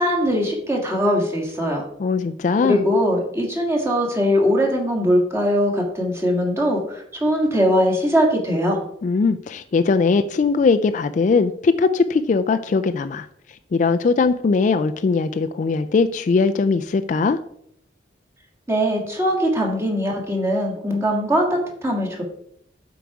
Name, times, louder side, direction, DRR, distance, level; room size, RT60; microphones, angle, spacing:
voice 1, 0.0-1.8 2.6-8.8 18.7-22.2, equal, 15° right, -1 dB, 1.6 m, -21 dB
voice 2, 2.0-2.9 9.0-13.3 13.7-17.4, left 4 dB, 40° left, 10 dB, 0.3 m, -20 dB
7.9 x 4.7 x 4.7 m, 0.70 s
head